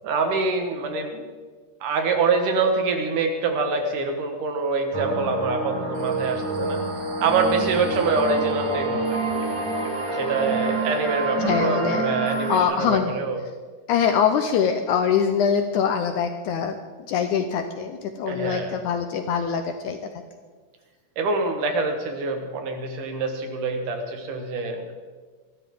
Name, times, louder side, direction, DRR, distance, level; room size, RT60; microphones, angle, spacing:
voice 1, 0.0-1.2 1.8-6.8 7.2-9.3 10.1-13.4 18.3-18.7 21.2-24.9, right 4 dB, 70° right, 4 dB, 2.9 m, -25 dB
sound 1, 4.9-12.6, right 3 dB, 30° right, 1.9 m, -27 dB
voice 2, 11.4-12.1 12.5-13.1 13.9-16.8 17.1-20.0, left 7 dB, 75° left, 7 dB, 2.0 m, -23 dB
21.0 x 13.5 x 3.7 m, 1.4 s
omnidirectional pair, 3.8 m